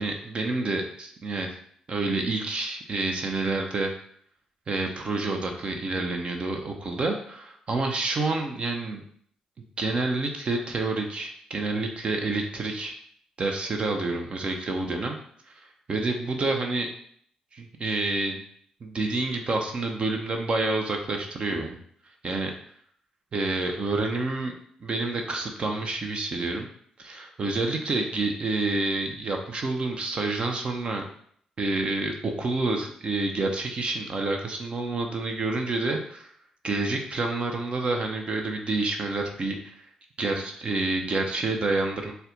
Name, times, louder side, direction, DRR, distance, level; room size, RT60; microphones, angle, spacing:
voice 1, 0.0-1.6 1.9-3.9 4.7-9.0 9.8-12.9 13.4-15.2 15.5-15.6 15.9-16.9 17.5-18.4 18.8-21.8 22.2-22.5 23.3-26.7 27.0-31.0 31.6-36.3 36.6-39.8 40.2-42.1, right 2 dB, 50° right, 3 dB, 0.6 m, -28 dB
4.1 x 2.3 x 3.8 m, 0.63 s
supercardioid pair, 55°, 2 cm